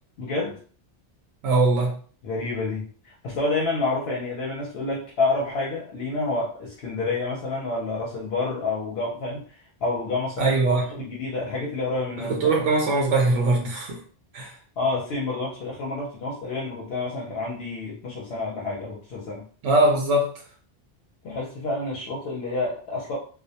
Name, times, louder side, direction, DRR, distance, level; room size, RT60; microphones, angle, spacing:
voice 1, 0.2-0.6 2.2-9.4 9.8-12.4 14.8-19.4 21.2-23.2, left 3 dB, 75° left, -4 dB, 0.8 m, -28 dB
voice 2, 1.4-1.9 10.4-10.8 12.2-14.0 14.3-14.5 19.6-20.3, right 2 dB, 85° right, 0 dB, 0.9 m, -21 dB
2.2 x 2.1 x 2.7 m, 0.43 s
omnidirectional pair, 1.1 m